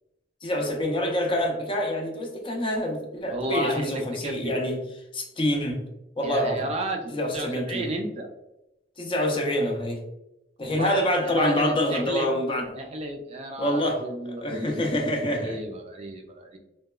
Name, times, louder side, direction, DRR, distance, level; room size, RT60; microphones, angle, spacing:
voice 1, 0.4-4.8 5.1-5.9 6.2-6.7 7.1-7.9 9.0-10.0 10.6-12.7 13.6-14.1 14.4-15.6, left 1 dB, 30° left, 1 dB, 0.5 m, -26 dB
voice 2, 3.3-4.5 6.2-8.3 10.6-12.3 12.7-14.8 15.4-16.6, right 2 dB, 35° right, 3 dB, 0.3 m, -33 dB
2.8 x 2.2 x 2.2 m, 0.88 s
head